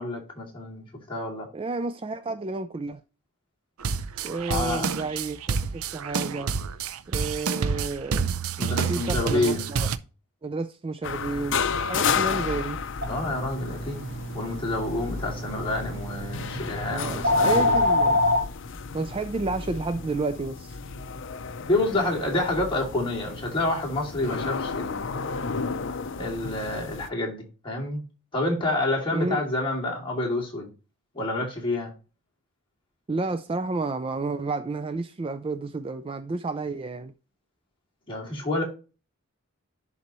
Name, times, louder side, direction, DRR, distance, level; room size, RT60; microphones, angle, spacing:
voice 1, 0.0-1.5 4.5-5.0 8.6-9.7 13.1-14.1 14.3-17.8 21.7-25.5 26.2-28.0 28.3-30.7 31.1-31.9 38.1-38.6, left 2 dB, 25° left, 2.5 m, -28 dB
voice 2, 1.5-3.0 4.1-6.5 7.1-8.3 8.9-9.9 10.4-12.8 16.9-18.2 18.9-20.8 29.1-29.4 33.1-37.1, right 3 dB, 25° right, 0.3 m, -31 dB
sound 1, 3.8-10.0, right 5 dB, 85° right, 0.5 m, -28 dB
sound 2, 11.0-27.1, left 5 dB, 60° left, 0.6 m, -32 dB
sound 3, 13.0-18.4, left 2 dB, 50° right, 1.1 m, -26 dB
11.0 x 4.2 x 3.0 m
head